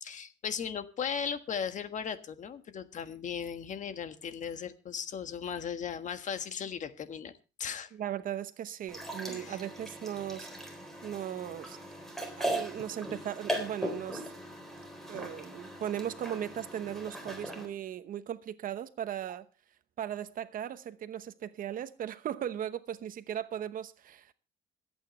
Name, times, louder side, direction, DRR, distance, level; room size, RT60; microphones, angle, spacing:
voice 1, 0.0-7.3 7.6-7.9 9.3-9.6, left 7 dB, 45° left, 1.5 m, -37 dB
voice 2, 7.9-10.5 11.0-11.8 12.4-14.3 15.1-19.5 20.0-24.3, right 10 dB, 55° right, 0.9 m, -37 dB
sound 1, 8.9-17.7, right 1 dB, ahead, 3.8 m, -39 dB
26.0 x 9.0 x 3.1 m
cardioid pair, 110°, 17 cm